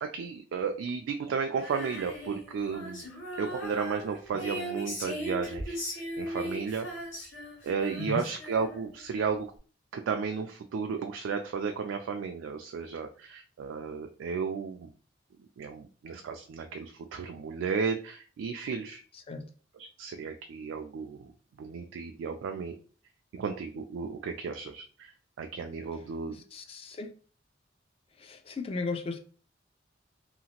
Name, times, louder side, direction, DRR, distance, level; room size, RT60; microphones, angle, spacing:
voice 1, 0.0-3.1 3.4-6.9 7.6-9.5 9.9-14.9 15.6-19.0 19.8-21.3 21.6-22.8 23.3-25.1 25.4-26.4, right 5 dB, 85° right, 0.3 m, -34 dB
Female singing, 1.5-9.0, equal, 85° left, 1.1 m, -38 dB
voice 2, 19.1-19.4 26.3-27.1 28.2-29.2, left 3 dB, 30° left, 0.3 m, -36 dB
2.8 x 2.4 x 2.8 m
head